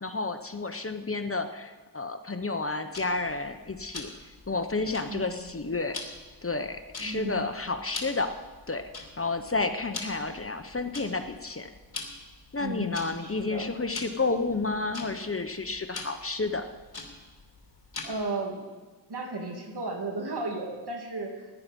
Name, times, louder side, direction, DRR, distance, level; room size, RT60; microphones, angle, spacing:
voice 1, 0.0-4.1 4.5-6.0 6.4-8.3 8.7-8.8 9.2-11.7 12.5-16.6, left 3 dB, 30° left, 8 dB, 1.1 m, -31 dB
Tick-tock, 2.9-18.4, left 3 dB, 60° left, 2.6 m, -44 dB
voice 2, 5.1-5.5 7.0-7.4 12.6-13.7 18.0-18.6 19.1-21.5, right 2 dB, 65° right, 1 dB, 2.7 m, -34 dB
16.5 x 10.5 x 5.4 m, 1.3 s
cardioid pair, 50°, 42 cm